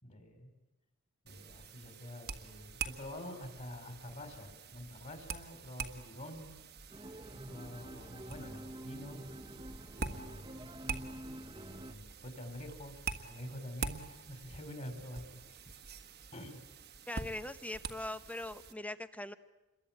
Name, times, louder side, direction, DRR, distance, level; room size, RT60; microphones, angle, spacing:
voice 1, 0.0-0.5 1.2-6.5 7.3-9.2 10.1-10.7 11.8-15.2 15.5-15.8 16.3-16.6, left 1 dB, 35° left, 6 dB, 4.5 m, -47 dB
sound 1, 1.3-18.7, right 5 dB, 45° right, 1.6 m, -46 dB
sound 2, 6.9-11.9, right 1 dB, 20° right, 1.0 m, -47 dB
voice 2, 17.1-19.3, left 1 dB, 5° left, 12 dB, 0.9 m, -41 dB
28.0 x 22.5 x 8.9 m, 1.1 s
head